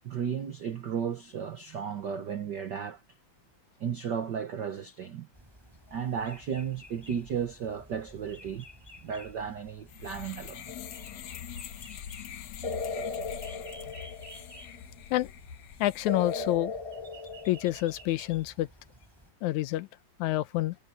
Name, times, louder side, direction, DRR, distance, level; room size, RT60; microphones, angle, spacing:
voice 1, 0.0-3.0 3.8-5.3 5.9-8.7 9.0-10.6 11.6-12.0, right 7 dB, 75° right, 0.9 m, -34 dB
sound 1, 5.3-19.3, equal, 5° right, 6.4 m, -52 dB
sound 2, 9.9-16.5, left 9 dB, 70° left, 2.3 m, -44 dB
sound 3, 10.7-11.3 12.6-14.7 16.1-18.1, left 4 dB, 10° left, 2.2 m, -37 dB
voice 2, 15.8-16.7 17.5-18.7 19.4-19.9 20.2-20.8, left 16 dB, 85° left, 2.1 m, -28 dB
omnidirectional pair, 3.4 m